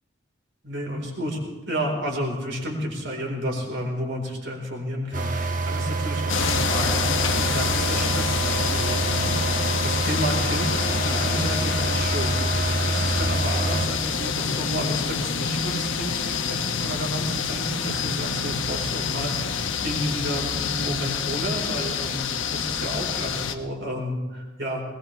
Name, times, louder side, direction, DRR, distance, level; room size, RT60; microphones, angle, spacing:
voice 1, 0.6-1.4 1.7-24.8, equal, 70° right, 0 dB, 4.4 m, -31 dB
sound 1, 5.1-13.9, right 3 dB, 40° right, 1.2 m, -26 dB
sound 2, 6.3-23.5, left 6 dB, 90° left, 1.0 m, -27 dB
21.5 x 19.0 x 3.5 m, 1.3 s
head